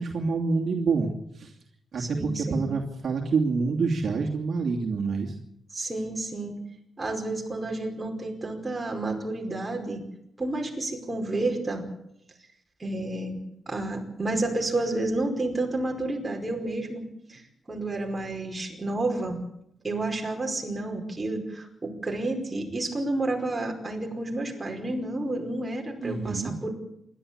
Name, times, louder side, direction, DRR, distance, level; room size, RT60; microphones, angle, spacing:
voice 1, 0.0-1.5 1.9-5.3 26.0-26.5, right 4 dB, 55° right, 0 dB, 2.7 m, -27 dB
voice 2, 2.0-2.6 5.7-6.6 7.0-10.0 10.4-11.8 12.8-13.4 13.7-17.4 17.7-19.4 19.8-26.7, right 2 dB, 20° right, 2 dB, 5.0 m, -30 dB
27.5 x 12.5 x 8.8 m, 0.78 s
wide cardioid pair, 145°, 0 cm